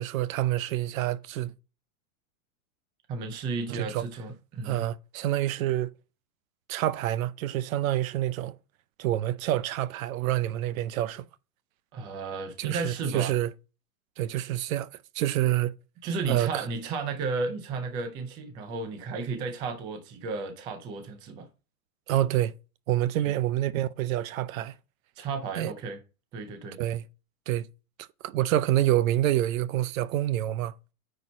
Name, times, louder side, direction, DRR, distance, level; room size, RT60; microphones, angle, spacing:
voice 1, 0.0-1.5 3.7-4.1 4.6-5.9 6.7-8.6 9.0-11.2 12.6-13.5 14.2-15.7 16.3-16.6 22.1-22.5 22.9-24.7 25.6-25.7 26.8-27.1 27.5-27.7 28.2-30.7, right 13 dB, 60° right, 0.7 m, -27 dB
voice 2, 3.1-4.9 11.9-13.4 16.0-21.5 23.2-23.3 25.2-26.0 26.3-26.8, right 4 dB, 10° right, 0.4 m, -33 dB
9.3 x 4.5 x 4.1 m
supercardioid pair, 155°, 47 cm